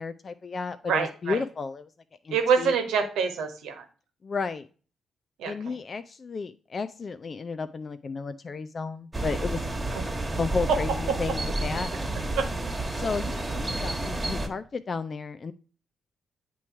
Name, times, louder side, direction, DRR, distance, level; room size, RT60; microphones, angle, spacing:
voice 1, 0.0-1.9 2.2-2.7 4.2-4.7 5.4-9.6 10.4-11.9 12.9-15.5, left 4 dB, 45° left, 11 dB, 0.4 m, -33 dB
voice 2, 0.8-1.4 2.3-3.8 5.4-5.7 9.9-10.3 10.7-10.8 11.1-11.2 12.4-12.5, right 6 dB, 75° right, 6 dB, 1.1 m, -26 dB
sound 1, 9.1-14.5, right 2 dB, 25° right, 1.4 m, -30 dB
8.2 x 3.1 x 4.4 m, 0.38 s
hypercardioid pair, 45°, 0 cm